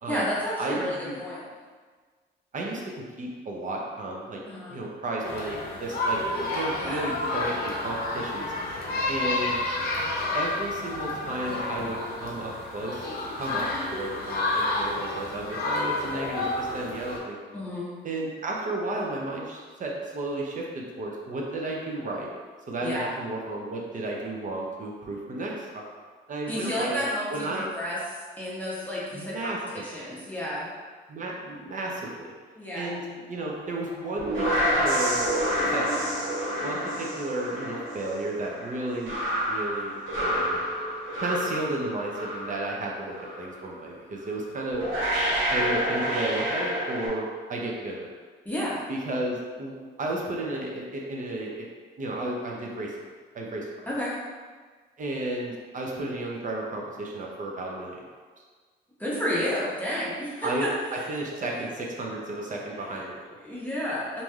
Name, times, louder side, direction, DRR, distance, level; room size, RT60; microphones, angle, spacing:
voice 1, 0.1-1.5 4.5-4.8 6.8-7.1 17.5-17.9 22.8-23.1 26.5-30.7 32.6-32.9 48.4-48.8 53.9-54.2 59.0-61.1 62.7-63.1 63.4-64.2, equal, 10° left, -7 dB, 0.8 m, -31 dB
voice 2, 0.6-1.2 2.5-4.4 4.7-8.5 9.1-9.6 10.3-13.1 13.4-17.4 18.0-22.3 22.7-25.9 26.3-27.0 27.3-27.7 29.1-30.0 31.1-32.3 32.7-35.2 35.7-36.1 36.6-40.6 41.2-44.8 45.5-48.1 48.9-51.7 52.0-52.9 53.3-53.7 55.0-58.0 60.4-63.3, right 2 dB, 40° right, -1 dB, 0.6 m, -33 dB
sound 1, 5.2-17.2, left 2 dB, 50° left, 0.6 m, -30 dB
sound 2, 33.9-42.8 43.1-43.5 44.3-44.4 44.7-47.1, equal, 80° right, 1.0 m, -28 dB
3.1 x 2.6 x 2.3 m, 1.5 s
cardioid pair, 90°, 20 cm